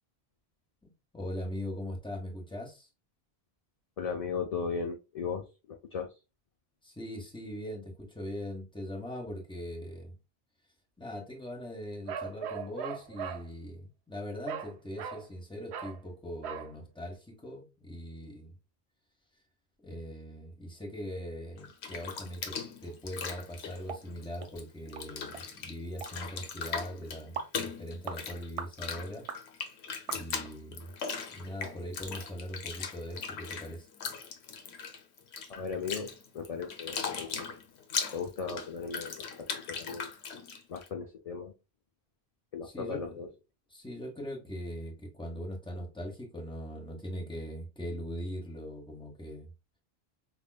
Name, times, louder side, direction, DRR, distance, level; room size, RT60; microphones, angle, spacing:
voice 1, 0.8-2.9 6.8-10.2 11.0-18.5 19.8-29.3 30.1-30.9 31.3-33.9 42.6-43.3 43.7-49.5, equal, 5° left, 1.0 m, -41 dB
voice 2, 4.0-6.1 35.5-37.5 38.1-40.1 40.7-41.5 42.5-43.3, left 5 dB, 50° left, 0.4 m, -37 dB
Bark, 12.1-13.5 14.5-14.7 15.0-15.3 15.7-16.0 16.4-16.7, right 7 dB, 90° right, 0.8 m, -38 dB
Bathtub (filling or washing), 21.6-24.6 24.9-40.9, left 6 dB, 85° left, 1.0 m, -39 dB
vocal pops, 23.9-24.0 24.4-24.5 25.0-25.1 25.3-25.5 26.0-26.1 26.7-26.8 27.4-27.5 28.0-28.2 28.6-28.8 29.3-29.4 30.1-30.5 31.0-31.1 31.6-31.7 32.1-32.2, right 5 dB, 50° right, 0.4 m, -40 dB
5.0 x 2.4 x 2.3 m
omnidirectional pair, 1.1 m